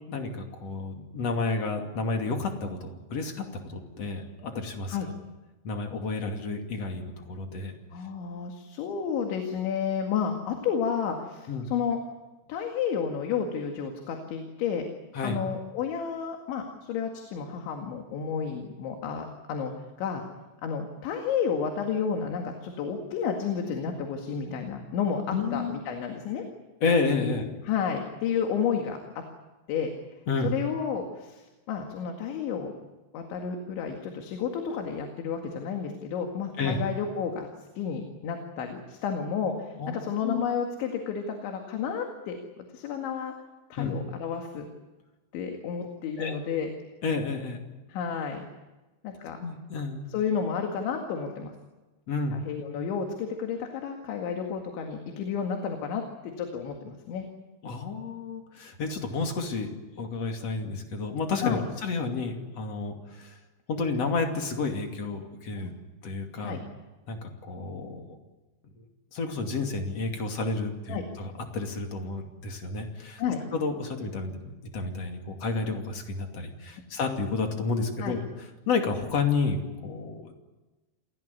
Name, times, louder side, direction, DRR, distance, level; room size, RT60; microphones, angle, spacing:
voice 1, 0.1-5.0 5.6-7.7 11.5-11.7 15.1-15.4 25.3-25.8 26.8-27.5 30.3-30.5 36.6-36.8 39.8-40.4 43.8-44.0 46.2-46.3 47.0-47.6 49.4-50.1 52.1-52.4 57.6-59.7 60.0-63.4 63.7-65.7 66.0-66.6 67.1-68.2 68.6-68.8 69.1-73.2 73.5-78.2 78.7-80.3, left 4 dB, 40° left, 3 dB, 3.1 m, -31 dB
voice 2, 7.9-12.0 12.5-14.8 15.2-20.2 20.6-26.4 27.2-27.3 27.7-29.2 29.7-29.9 30.4-32.7 33.1-37.5 37.8-42.4 42.7-43.3 43.7-44.7 45.3-46.7 47.9-48.5 49.0-49.4 50.1-51.5 52.3-57.3 61.4-61.6 65.6-65.7 66.4-66.6 70.9-71.0 73.2-73.4 78.0-78.1, left 7 dB, 75° left, 3 dB, 4.3 m, -31 dB
28.0 x 17.5 x 9.7 m, 1.1 s
omnidirectional pair, 5.4 m